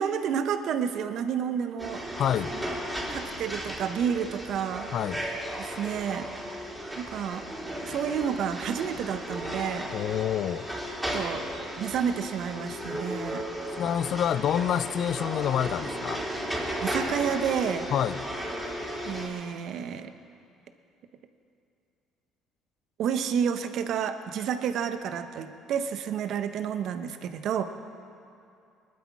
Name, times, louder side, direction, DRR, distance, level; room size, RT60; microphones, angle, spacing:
voice 1, 0.0-2.1 2.5-2.6 3.1-5.0 5.6-6.6 6.9-7.4 7.8-9.9 11.1-11.5 11.8-13.5 16.8-17.9 19.0-20.1 23.0-27.6, right 8 dB, 65° right, 9 dB, 0.9 m, -30 dB
sound 1, 1.8-19.3, equal, 5° right, 3.6 m, -35 dB
voice 2, 2.2-2.5 4.9-5.3 9.9-10.7 13.8-16.2 17.9-18.2, left 10 dB, 60° left, 16 dB, 0.4 m, -27 dB
20.0 x 12.0 x 4.8 m, 2.6 s
supercardioid pair, 70°, 0 cm